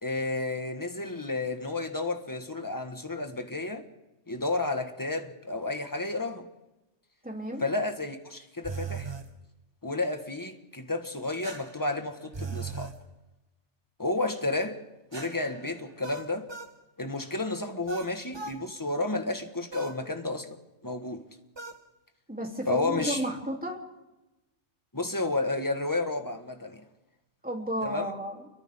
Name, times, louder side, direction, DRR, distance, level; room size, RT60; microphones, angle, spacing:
voice 1, 0.0-3.9 4.3-6.5 7.6-9.1 9.8-12.9 14.0-14.8 15.1-16.5 17.0-21.2 22.7-23.2 24.9-26.8 27.8-28.1, left 2 dB, 15° left, 1.7 m, -31 dB
voice 2, 7.2-7.6 22.3-23.8 27.4-28.4, right 1 dB, 5° right, 3.4 m, -33 dB
sound 1, 8.6-9.3 11.4-13.0 15.1-16.8 17.9-18.6 19.7-20.0 21.6-21.8, right 5 dB, 25° right, 1.1 m, -39 dB
30.0 x 24.0 x 3.8 m
omnidirectional pair, 1.2 m